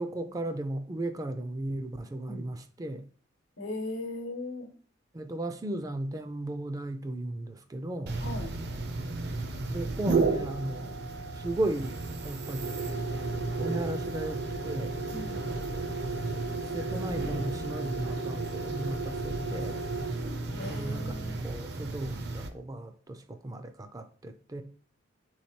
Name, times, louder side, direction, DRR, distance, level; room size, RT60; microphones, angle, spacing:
voice 1, 0.0-3.1 5.1-8.2 9.7-11.0 11.3-12.0 12.2-12.8 13.1-14.9 16.7-19.8 20.7-24.6, right 1 dB, 20° right, 0.3 m, -36 dB
voice 2, 3.6-4.7 8.2-8.5 15.1-15.5 20.5-21.4, left 2 dB, 90° left, 0.9 m, -38 dB
sound 1, 8.1-22.5, right 3 dB, 55° right, 0.6 m, -33 dB
3.5 x 3.2 x 4.2 m
head